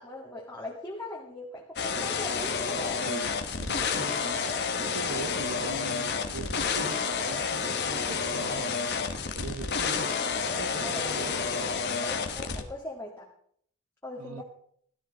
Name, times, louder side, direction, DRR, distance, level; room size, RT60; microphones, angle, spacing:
voice 1, 0.0-3.0 9.7-10.4 10.8-11.6 12.0-13.3 14.0-14.4, left 1 dB, 10° left, -3 dB, 1.8 m, -40 dB
sound 1, 1.8-12.6, left 5 dB, 50° left, 1.4 m, -30 dB
voice 2, 3.1-8.8 9.3-10.1 10.5-11.4 14.2-14.4, right 3 dB, 80° right, 10 dB, 1.2 m, -42 dB
17.0 x 12.5 x 4.0 m, 0.64 s
head